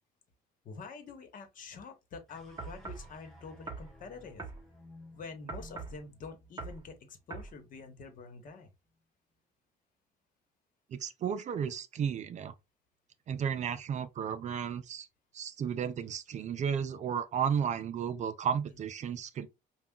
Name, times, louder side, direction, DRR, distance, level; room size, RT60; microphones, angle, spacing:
voice 1, 0.6-4.4 5.1-8.7, left 4 dB, 55° left, 1.1 m, -47 dB
sound 1, 2.3-8.7, left 1 dB, ahead, 2.3 m, -57 dB
sound 2, 2.6-3.1 3.7-3.9 4.4-4.6 5.5-6.0 6.6-6.8 7.3-7.5, right 4 dB, 25° right, 1.2 m, -41 dB
voice 2, 10.9-12.5 13.3-15.1 15.3-19.5, right 7 dB, 45° right, 0.4 m, -33 dB
5.4 x 2.3 x 2.3 m
cardioid pair, 110°, 17 cm